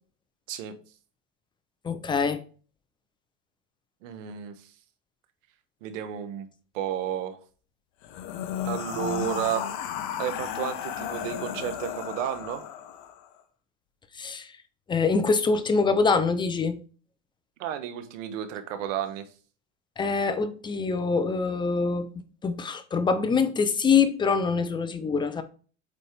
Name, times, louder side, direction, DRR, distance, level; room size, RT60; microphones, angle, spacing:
voice 1, 1.8-2.4 14.2-14.5 14.9-16.8 20.0-25.4, left 5 dB, 10° left, 0.6 m, -24 dB
voice 2, 4.0-4.7 5.8-6.5 6.7-7.4 8.6-9.6 10.2-12.6 17.6-19.3, right 10 dB, 75° right, 1.4 m, -32 dB
sound 1, 8.0-13.3, left 9 dB, 50° left, 1.0 m, -34 dB
8.3 x 4.2 x 3.4 m
supercardioid pair, 140°, 38 cm